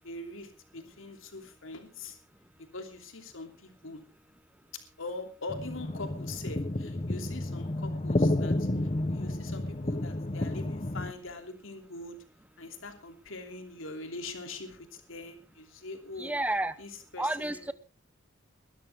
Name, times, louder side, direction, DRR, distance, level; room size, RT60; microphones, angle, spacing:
voice 1, 0.0-2.2 2.6-4.0 5.0-8.7 9.1-12.2 12.6-16.3 16.8-17.7, left 2 dB, 90° left, 6 dB, 3.0 m, -43 dB
sound 1, 5.5-11.1, left 1 dB, 30° left, 0.9 m, -31 dB
voice 2, 16.2-16.8 17.2-17.7, right 1 dB, 10° right, 15 dB, 0.8 m, -30 dB
21.5 x 12.5 x 3.6 m, 0.32 s
head